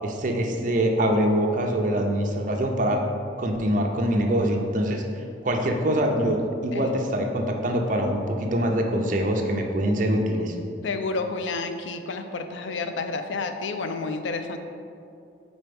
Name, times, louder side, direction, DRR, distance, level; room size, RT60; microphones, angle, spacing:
voice 1, 0.0-3.0 3.4-5.0 5.4-10.5, right 1 dB, 45° right, 2 dB, 0.6 m, -24 dB
voice 2, 10.8-14.6, left 3 dB, 75° left, 7 dB, 0.4 m, -30 dB
4.4 x 4.2 x 5.2 m, 2.5 s
head